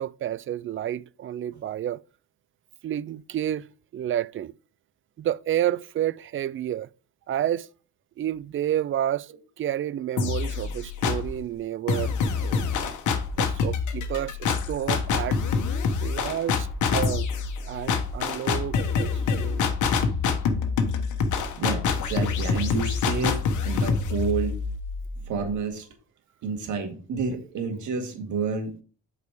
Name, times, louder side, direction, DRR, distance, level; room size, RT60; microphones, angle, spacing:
voice 1, 0.0-2.0 2.8-3.7 3.9-4.5 5.2-6.9 7.3-7.7 8.2-9.3 9.6-12.1 12.4-12.6 13.4-15.4 16.0-17.2 17.7-19.9, right 11 dB, 45° right, 0.4 m, -30 dB
sound 1, 10.2-11.4 11.9-25.6, left 5 dB, 75° left, 1.3 m, -26 dB
voice 2, 21.5-24.6 25.2-25.9 26.4-28.8, right 5 dB, 75° right, 2.1 m, -30 dB
8.1 x 4.9 x 5.0 m
cardioid pair, 90°, 30 cm